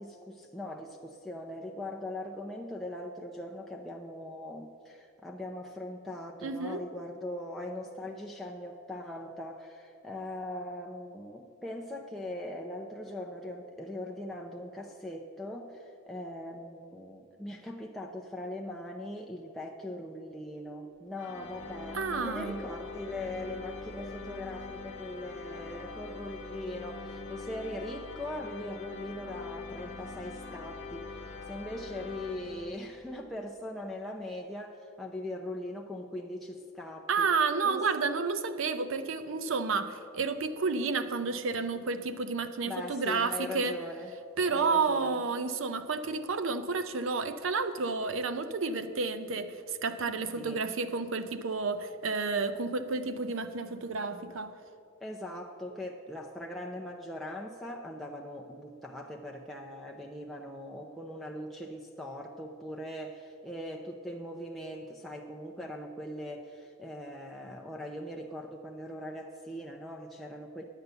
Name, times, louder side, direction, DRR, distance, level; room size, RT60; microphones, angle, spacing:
voice 1, 0.0-37.3 37.6-37.9 42.7-44.1 44.5-45.2 50.4-50.6 55.0-70.6, left 1 dB, ahead, -1 dB, 0.6 m, -40 dB
voice 2, 6.4-6.8 21.9-22.6 37.1-43.8 44.4-54.5, right 4 dB, 70° right, 11 dB, 0.6 m, -31 dB
sound 1, 21.2-33.1, left 3 dB, 55° left, 1.0 m, -43 dB
10.5 x 8.2 x 6.8 m, 2.4 s
head